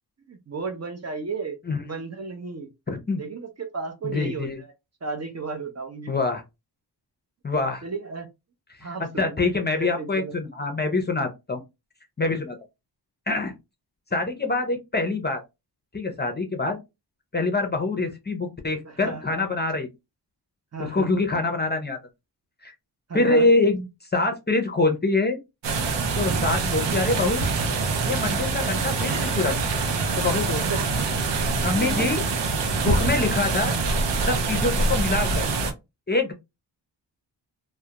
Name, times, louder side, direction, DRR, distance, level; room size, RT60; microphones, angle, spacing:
voice 1, 0.3-1.6 1.8-2.7 3.2-4.7 5.0-6.1 7.8-8.3 8.8-10.3 18.8-19.4 20.7-21.1 23.1-23.5 30.7-31.0 31.7-32.1, right 4 dB, 40° right, 0.5 m, -34 dB
voice 2, 1.7-2.0 2.9-3.2 4.0-4.6 6.1-6.4 7.4-7.8 8.8-11.6 12.2-12.6 13.3-13.5 14.1-15.4 15.9-16.8 17.3-19.9 20.9-22.0 22.6-22.7 23.1-23.9 24.1-25.4 26.2-27.5 28.1-29.5 30.2-30.6 31.6-32.2 32.8-33.7 34.3-35.5 36.1-36.3, left 3 dB, 25° left, 0.5 m, -25 dB
sound 1, 25.6-35.7, right 4 dB, 80° right, 0.6 m, -25 dB
2.3 x 2.1 x 2.8 m
wide cardioid pair, 85°, 43 cm